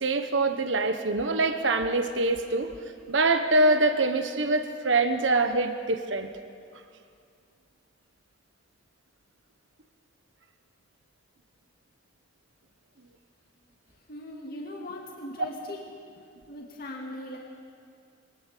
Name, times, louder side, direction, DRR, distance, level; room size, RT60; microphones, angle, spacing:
voice 1, 0.0-2.7 3.1-6.3, right 2 dB, 80° right, 8 dB, 1.2 m, -24 dB
voice 2, 14.1-15.8 16.2-17.4, left 1 dB, 50° left, -1 dB, 2.3 m, -40 dB
23.0 x 19.0 x 6.8 m, 2.4 s
head